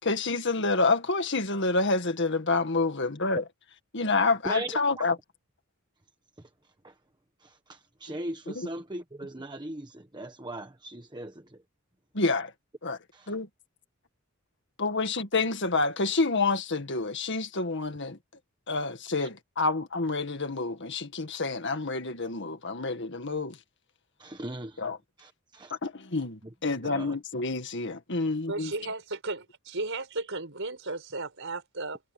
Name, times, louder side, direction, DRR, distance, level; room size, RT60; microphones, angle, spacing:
voice 1, 0.0-3.4 3.9-5.1 8.6-8.7 12.1-12.5 12.8-13.0 13.3-13.5 14.8-18.2 18.7-23.6 24.8-25.0 25.8-28.7, left 3 dB, 55° left, 1.9 m, -28 dB
voice 2, 4.4-5.1 6.8-6.9 7.4-11.6 19.2-19.3 24.2-24.8 25.2-25.8 26.4-26.5 26.8-27.2, right 1 dB, 20° right, 1.2 m, -39 dB
voice 3, 28.5-32.0, right 3 dB, 60° right, 5.7 m, -35 dB
head